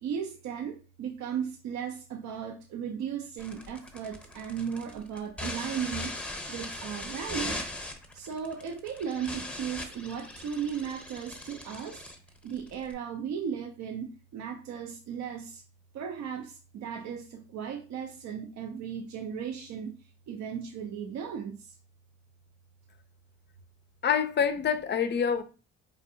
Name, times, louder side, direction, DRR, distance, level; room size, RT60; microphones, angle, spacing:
voice 1, 0.0-6.2 6.5-7.6 8.1-12.1 12.4-15.6 15.9-20.0 20.3-21.7, right 7 dB, 65° right, 0.5 m, -36 dB
sound 1, 3.4-12.9, left 1 dB, 5° left, 0.7 m, -39 dB
voice 2, 24.0-25.4, left 7 dB, 35° left, 0.4 m, -26 dB
4.3 x 2.6 x 2.6 m
cardioid pair, 90°, 30 cm